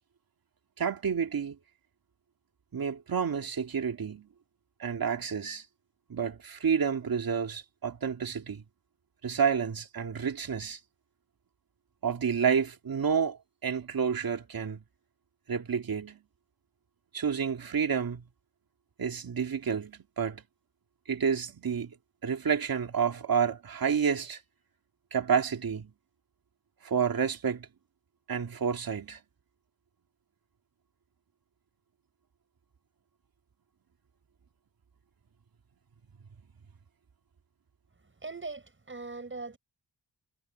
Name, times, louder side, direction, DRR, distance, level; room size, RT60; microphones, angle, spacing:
voice 1, 0.8-1.6 2.7-4.3 4.8-5.7 6.1-8.6 9.2-10.8 12.0-14.8 15.5-16.2 17.1-18.2 19.0-20.4 21.1-22.0 22.2-24.4 25.1-25.9 26.8-27.7 28.3-29.2, right 7 dB, 55° right, 2.4 m, -29 dB
voice 2, 38.2-39.6, right 3 dB, 30° right, 6.9 m, -40 dB
wide cardioid pair, 150°, 42 cm